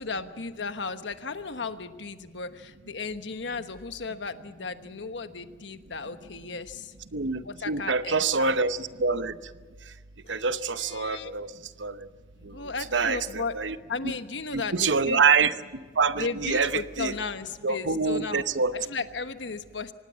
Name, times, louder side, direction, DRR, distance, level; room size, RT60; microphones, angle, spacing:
voice 1, 0.0-6.9 7.4-8.6 10.3-10.4 10.8-11.3 12.4-13.6 13.9-15.2 16.1-18.4 18.7-19.9, left 4 dB, 75° left, 9 dB, 1.2 m, -35 dB
voice 2, 7.1-9.3 10.3-11.5 11.8-11.9 12.9-13.8 14.0-14.1 14.5-15.5 16.0-16.7 17.0-17.1 17.6-18.7, right 5 dB, 80° right, 12 dB, 0.9 m, -25 dB
25.0 x 19.0 x 7.5 m, 1.5 s
head